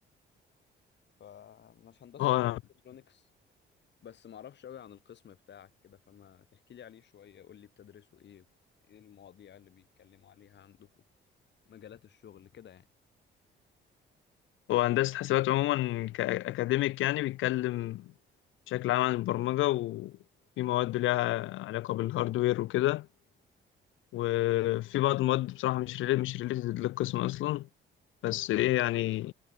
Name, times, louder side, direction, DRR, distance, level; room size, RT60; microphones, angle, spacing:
voice 1, 1.2-2.4 2.8-3.3 4.0-8.5 8.9-11.0 11.7-12.9, left 9 dB, 60° left, 7.1 m, -52 dB
voice 2, 2.2-2.6 14.7-18.1 18.7-20.1 20.6-23.1 24.1-27.7 28.2-29.3, left 16 dB, 85° left, 0.8 m, -29 dB
cardioid pair, 90°, 20 cm